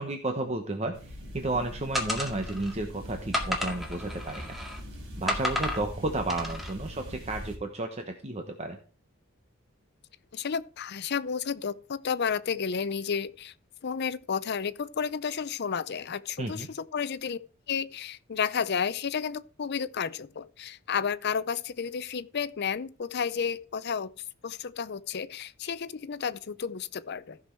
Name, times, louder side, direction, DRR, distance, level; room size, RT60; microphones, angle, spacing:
voice 1, 0.0-4.6 5.2-8.8 16.4-16.7, right 2 dB, 30° right, 1.0 m, -32 dB
ambience forest shore reeds bulrush province Dolginiha, 0.9-7.6, equal, 65° right, 3.8 m, -42 dB
sound 1, 1.9-2.7 3.3-4.8 5.3-5.8 6.3-6.7, left 1 dB, ahead, 1.9 m, -32 dB
voice 2, 10.3-13.5 13.8-17.4 17.7-24.1 24.4-27.4, left 6 dB, 55° left, 0.5 m, -32 dB
15.0 x 6.1 x 4.5 m
head